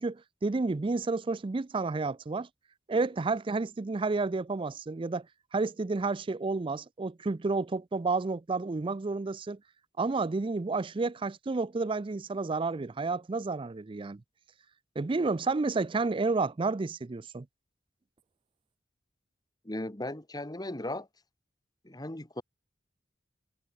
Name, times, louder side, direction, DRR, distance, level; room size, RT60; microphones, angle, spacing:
voice 1, 0.0-2.5 2.9-5.3 5.5-9.6 10.0-14.2 15.0-17.5, right 3 dB, 30° right, 0.4 m, -30 dB
voice 2, 19.7-21.1 21.8-22.4, left 1 dB, 20° left, 1.7 m, -37 dB
head